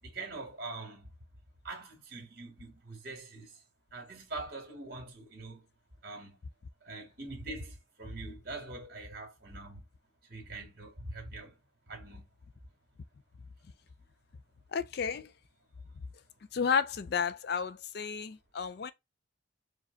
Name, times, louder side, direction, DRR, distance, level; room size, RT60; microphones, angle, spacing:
voice 1, 0.0-1.1 1.6-3.6 3.9-5.6 6.0-6.4 6.8-9.8 10.3-11.6 11.9-12.2, right 2 dB, 50° right, 2.0 m, -43 dB
voice 2, 14.7-15.3 16.5-18.9, left 6 dB, 50° left, 0.4 m, -32 dB
4.8 x 2.3 x 3.9 m
head